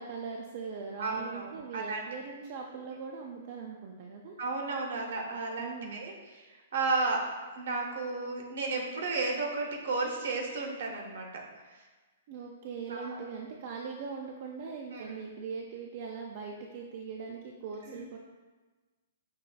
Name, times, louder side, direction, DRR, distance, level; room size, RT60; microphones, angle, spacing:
voice 1, 0.0-4.4 5.6-6.0 12.3-18.2, right 5 dB, 50° right, 0 dB, 0.4 m, -41 dB
voice 2, 1.0-2.0 4.4-6.4 6.7-7.3 7.5-11.4 12.9-13.2 14.9-15.1 17.9-18.1, right 3 dB, 70° right, 1 dB, 0.7 m, -33 dB
5.3 x 3.1 x 2.2 m, 1.3 s
hypercardioid pair, 130°, 0 cm